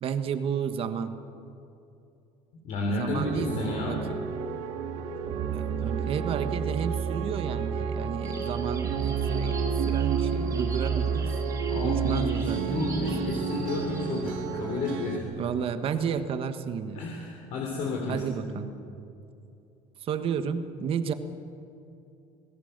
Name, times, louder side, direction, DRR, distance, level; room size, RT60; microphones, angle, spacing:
voice 1, 0.0-1.2 2.9-4.0 5.5-9.6 9.9-11.4 11.8-13.1 15.4-17.0 18.1-18.7 20.0-21.1, right 7 dB, 40° right, 9 dB, 1.4 m, -32 dB
voice 2, 2.6-4.0 11.7-15.2 16.9-18.6, left 2 dB, 60° left, -1 dB, 3.6 m, -32 dB
sound 1, 3.2-15.2, right 6 dB, 80° right, 2.3 m, -30 dB
sound 2, 8.2-14.2, right 3 dB, 25° right, 3.5 m, -44 dB
26.5 x 18.5 x 6.8 m, 2.7 s
cardioid pair, 155°, 14 cm